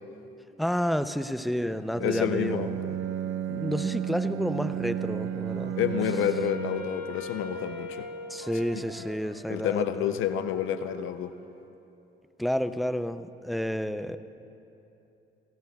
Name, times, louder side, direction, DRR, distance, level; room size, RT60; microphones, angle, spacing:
voice 1, 0.6-2.9 3.5-5.8 8.3-10.1 12.4-14.2, equal, ahead, 10 dB, 0.5 m, -30 dB
Bowed string instrument, 1.9-7.0, right 10 dB, 80° right, 0.7 m, -33 dB
voice 2, 2.0-2.7 5.8-8.1 8.7-8.8 9.5-11.3, left 10 dB, 85° left, 11 dB, 0.6 m, -29 dB
Wind instrument woodwind instrument, 4.9-9.2, left 2 dB, 70° left, 2.5 m, -41 dB
Wind instrument woodwind instrument 2, 5.1-8.1 8.4-11.7, right 4 dB, 50° right, 1.9 m, -47 dB
29.5 x 17.5 x 2.3 m, 3.0 s
cardioid pair, 90°, 20 cm